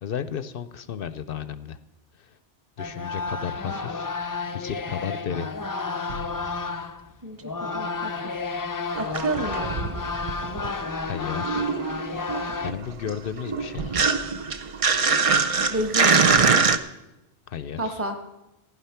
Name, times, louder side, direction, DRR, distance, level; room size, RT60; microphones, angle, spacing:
voice 1, 0.0-1.8 2.2-2.3 2.8-4.1 4.4-5.5 11.0-11.7 12.6-14.0 17.5-18.0, left 8 dB, 60° left, 13 dB, 0.7 m, -33 dB
sound 1, 2.8-7.1 7.4-12.7, left 4 dB, 30° left, 0.3 m, -31 dB
sound 2, 6.1-7.9 8.2-8.3, equal, 80° right, 1.7 m, -44 dB
voice 2, 7.7-8.3 8.9-9.7 15.7-16.1 17.8-18.2, right 1 dB, 10° right, 4 dB, 1.1 m, -29 dB
sound 3, 9.0-10.9 11.1-16.8, right 5 dB, 40° right, 0.5 m, -23 dB
15.0 x 9.7 x 5.7 m, 0.97 s
omnidirectional pair, 1.2 m